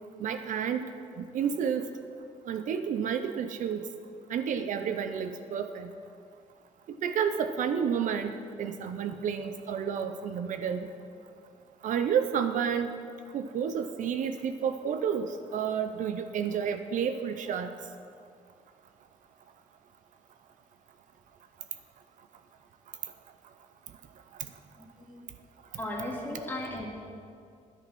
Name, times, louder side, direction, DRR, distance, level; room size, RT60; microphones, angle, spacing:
voice 1, 0.2-0.8 1.2-1.9 2.4-3.9 4.3-5.9 7.0-10.9 11.8-12.9 13.3-17.7, right 7 dB, 65° right, 9 dB, 0.6 m, -30 dB
voice 2, 24.8-25.3 25.8-26.9, left 1 dB, 15° left, -3 dB, 2.5 m, -36 dB
10.0 x 9.8 x 6.1 m, 2.3 s
cardioid pair, 140°, 14 cm